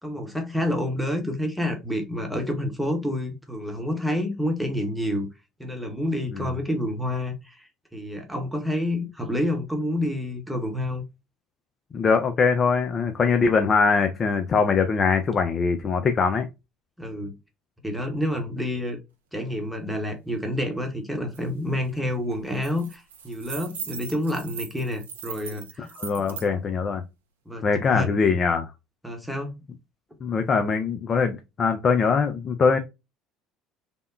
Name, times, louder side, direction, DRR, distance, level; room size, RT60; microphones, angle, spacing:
voice 1, 0.0-5.3 5.6-11.0 17.0-17.3 17.8-19.0 19.3-25.9 26.3-26.4 27.5-28.4 29.0-29.6, left 1 dB, ahead, 0.9 m, -28 dB
voice 2, 11.9-16.5 26.0-27.0 27.6-28.7 30.2-32.8, left 5 dB, 40° left, 0.4 m, -22 dB
sound 1, 21.3-21.4 21.8-22.0 22.3-26.5, right 7 dB, 80° right, 0.4 m, -39 dB
3.5 x 2.1 x 2.4 m
hypercardioid pair, 65°, 0 cm